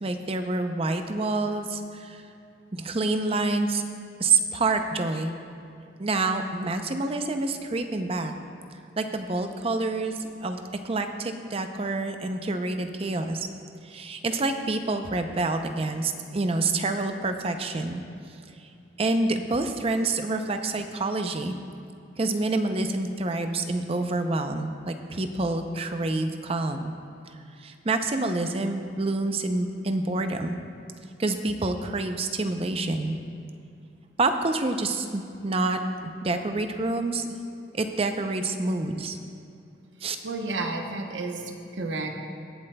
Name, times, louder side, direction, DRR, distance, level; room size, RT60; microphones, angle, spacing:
voice 1, 0.0-2.2 2.7-3.8 4.2-5.3 6.0-8.3 9.0-13.5 13.8-18.0 18.6-18.7 19.0-21.5 22.2-26.9 27.6-30.7 31.2-33.2 34.2-35.8 36.2-37.3 37.7-39.2 40.0-40.2, right 2 dB, 30° right, 7 dB, 0.5 m, -27 dB
voice 2, 40.2-42.1, right 2 dB, 85° right, 3 dB, 0.9 m, -31 dB
21.5 x 7.4 x 2.2 m, 2.6 s
head